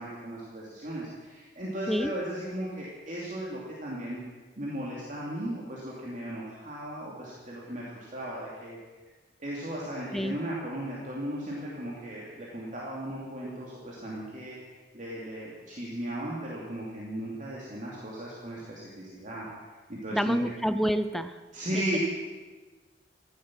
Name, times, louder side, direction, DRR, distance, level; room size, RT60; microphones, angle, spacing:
voice 1, 0.0-4.2 4.6-8.8 9.4-19.5 19.9-20.4 21.5-22.0, right 1 dB, 45° right, -5 dB, 2.8 m, -36 dB
voice 2, 20.1-21.4 21.7-22.0, equal, ahead, 11 dB, 0.5 m, -28 dB
16.0 x 12.5 x 6.2 m, 1.3 s
head